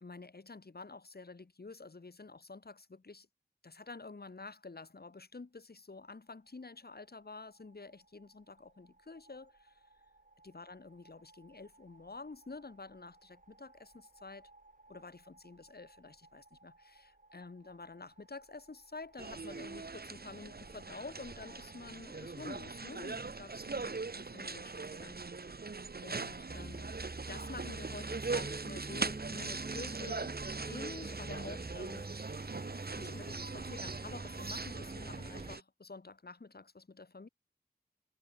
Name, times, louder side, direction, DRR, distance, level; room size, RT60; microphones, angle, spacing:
voice 1, 0.0-3.3 3.6-9.8 10.4-14.5 14.9-25.2 25.5-25.6 26.0-27.0 27.3-30.3 30.7-32.1 32.9-37.3, left 3 dB, 85° left, 2.9 m, -49 dB
sound 1, 6.0-21.9, right 2 dB, 55° right, 4.8 m, -64 dB
sound 2, 19.2-35.6, right 4 dB, 80° right, 1.4 m, -41 dB
sound 3, 26.5-35.6, right 2 dB, 40° right, 1.1 m, -45 dB
wide cardioid pair, 40°, 16 cm